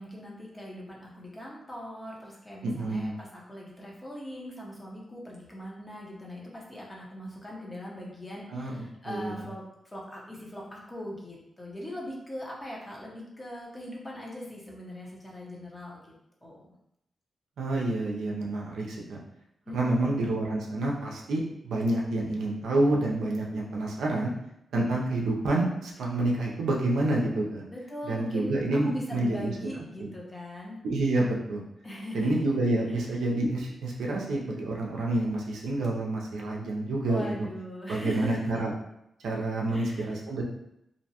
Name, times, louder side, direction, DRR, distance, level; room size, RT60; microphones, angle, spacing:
voice 1, 0.0-16.1 16.4-16.7 19.7-20.3 27.7-28.6 28.9-30.8 31.8-32.6 32.9-33.1 37.1-38.6 39.7-40.1, left 1 dB, 25° left, -3 dB, 0.8 m, -41 dB
voice 2, 2.6-3.1 8.5-9.4 17.6-19.2 19.7-24.3 24.7-27.6 28.0-29.5 30.0-30.1 30.8-31.6 32.1-37.3 37.9-38.7 39.2-40.4, right 2 dB, 90° right, -2 dB, 0.5 m, -28 dB
2.6 x 2.1 x 2.8 m, 0.80 s
cardioid pair, 60°, 0 cm